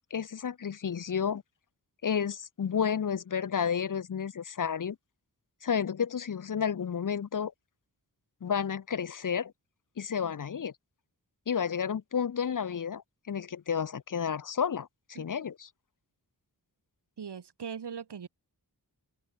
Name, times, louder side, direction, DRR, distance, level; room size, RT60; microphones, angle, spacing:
voice 1, 0.0-1.4 2.0-5.0 5.6-7.5 8.4-9.5 10.0-10.7 11.5-15.7, left 7 dB, 50° left, 0.6 m, -31 dB
voice 2, 17.2-18.3, right 7 dB, 75° right, 1.1 m, -40 dB
open air
wide cardioid pair, 60°, 41 cm